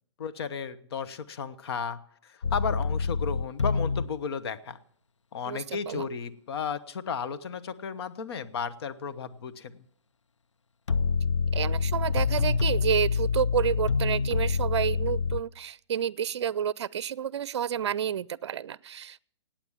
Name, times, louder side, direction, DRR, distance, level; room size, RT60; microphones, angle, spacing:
voice 1, 0.2-4.8 5.3-9.8, left 6 dB, 55° left, 11 dB, 1.1 m, -34 dB
sound 1, 2.4-4.1 10.9-15.4, left 5 dB, 90° left, 0.7 m, -26 dB
voice 2, 5.5-6.1 11.5-19.2, right 9 dB, 65° right, 22 dB, 0.5 m, -30 dB
17.5 x 8.8 x 7.2 m, 0.66 s
hypercardioid pair, 135°, 15 cm